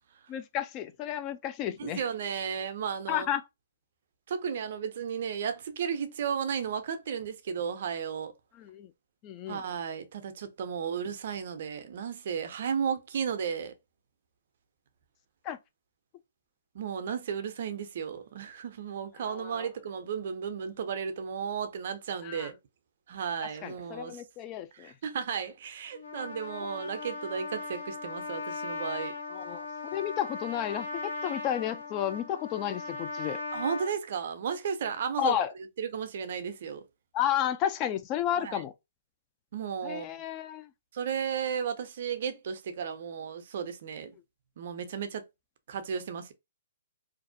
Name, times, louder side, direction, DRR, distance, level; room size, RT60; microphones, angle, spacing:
voice 1, 0.3-2.0 3.1-3.4 8.6-8.9 9.2-9.6 15.5-15.6 19.3-19.7 22.2-22.5 23.6-24.9 29.3-29.7 29.9-33.4 35.2-35.5 37.1-38.7 39.8-40.7, left 10 dB, 30° left, 0.3 m, -32 dB
voice 2, 1.8-3.3 4.3-8.3 9.5-13.7 16.7-22.6 23.1-24.2 24.7-29.1 33.5-35.4 35.8-36.8 38.4-38.6 39.5-40.1 40.9-44.2 44.6-45.2 45.7-46.3, right 7 dB, 55° right, 0.5 m, -34 dB
Trumpet, 25.9-33.9, left 3 dB, 65° left, 0.6 m, -38 dB
2.5 x 2.0 x 2.6 m
hypercardioid pair, 130°, 0 cm